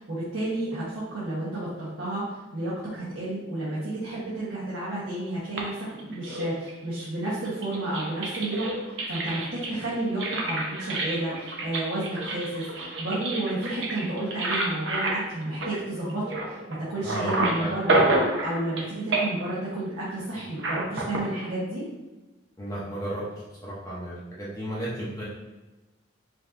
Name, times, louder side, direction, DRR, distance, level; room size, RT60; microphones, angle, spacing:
voice 1, 0.0-18.1 18.4-21.8, right 1 dB, 85° right, -9 dB, 1.2 m, -31 dB
sound 1, 5.6-6.9 7.5-16.8 17.1-18.9 19.1-19.5 20.6-21.2, right 2 dB, 65° right, 0.7 m, -29 dB
voice 2, 17.0-17.3 17.6-17.8 22.6-23.2 23.6-25.2, right 1 dB, 15° left, -7 dB, 0.6 m, -33 dB
5.1 x 2.7 x 2.5 m, 1.1 s
head